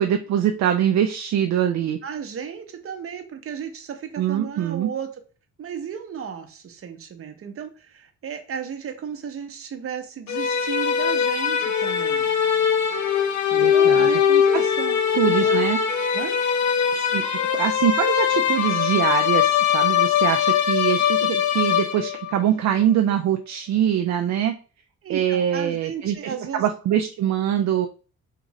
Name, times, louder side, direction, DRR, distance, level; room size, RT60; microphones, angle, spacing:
voice 1, 0.0-2.0 4.2-4.9 13.5-14.2 14.5-14.6 15.1-15.8 16.9-17.2 17.5-24.5 25.1-27.9, right 10 dB, 65° right, 6 dB, 0.5 m, -23 dB
voice 2, 2.0-5.1 5.6-12.3 13.7-15.0 15.3-15.7 16.1-16.4 25.0-26.7, right 7 dB, 45° right, 6 dB, 0.8 m, -34 dB
sound 1, 10.3-22.4, left 8 dB, 65° left, 0.7 m, -21 dB
3.7 x 2.4 x 3.1 m, 0.36 s
cardioid pair, 90°, 30 cm